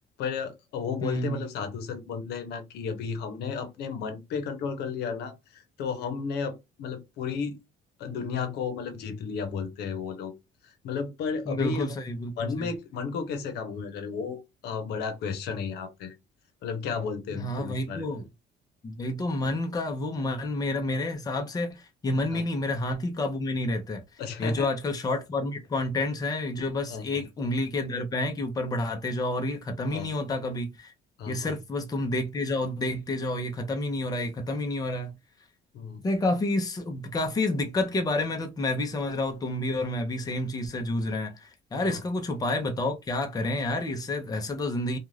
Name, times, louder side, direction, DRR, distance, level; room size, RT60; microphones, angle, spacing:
voice 1, 0.2-7.6 8.0-10.3 10.7-11.9 12.4-16.1 16.6-18.1 22.3-22.4 24.2-24.7 26.9-27.3 29.9-30.1 31.2-31.5 35.7-36.0 41.8-42.0, left 6 dB, 75° left, 0.8 m, -33 dB
voice 2, 1.0-1.4 11.5-12.7 17.3-18.3 18.8-30.9 31.3-35.1 36.0-45.0, left 2 dB, 20° left, 0.7 m, -29 dB
2.5 x 2.4 x 3.1 m
cardioid pair, 110°, 17 cm